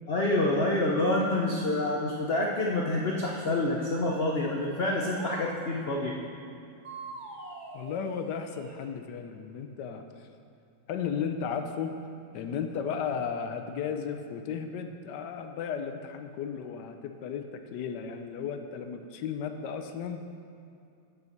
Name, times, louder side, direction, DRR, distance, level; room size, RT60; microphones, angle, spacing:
voice 1, 0.1-6.1, left 2 dB, 90° left, -1 dB, 0.5 m, -27 dB
sound 1, 3.7-5.5 6.8-8.9, right 3 dB, 50° right, 0.9 m, -44 dB
voice 2, 7.7-10.3 10.9-11.9 12.3-17.4 17.7-20.2, left 7 dB, 70° left, 6 dB, 1.2 m, -34 dB
6.7 x 5.6 x 7.1 m, 2.5 s
omnidirectional pair, 2.0 m